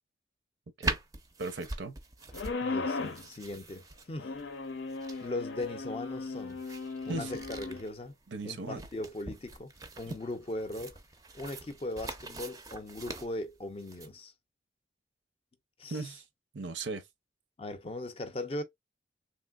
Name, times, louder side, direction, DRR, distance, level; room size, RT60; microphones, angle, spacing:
sound 1, 0.8-14.1, right 2 dB, 20° right, 0.4 m, -42 dB
voice 1, 1.4-2.0 7.1-7.4 8.3-8.9 15.9-16.2 16.5-17.1, right 3 dB, 80° right, 0.6 m, -37 dB
sound 2, 2.3-3.3 4.2-7.8, left 3 dB, 85° left, 0.6 m, -37 dB
voice 2, 2.6-4.3 5.2-6.6 7.1-8.1 8.4-9.7 10.0-11.0 11.3-14.3 15.8-16.0 17.6-18.6, left 2 dB, 30° left, 0.5 m, -39 dB
3.2 x 2.6 x 2.3 m
head